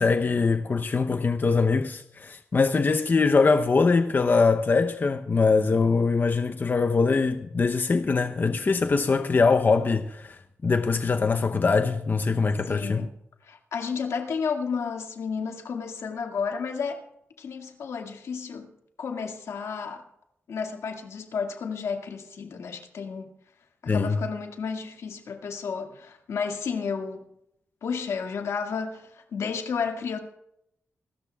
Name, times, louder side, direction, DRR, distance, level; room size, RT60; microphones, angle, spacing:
voice 1, 0.0-13.1 23.9-24.2, left 4 dB, 40° left, 0.8 m, -23 dB
voice 2, 12.7-13.1 13.4-17.0 17.4-18.7 19.0-20.0 20.5-23.3 23.8-27.3 27.8-30.2, left 5 dB, 85° left, 2.0 m, -32 dB
27.0 x 13.5 x 2.4 m
cardioid pair, 80°, 5 cm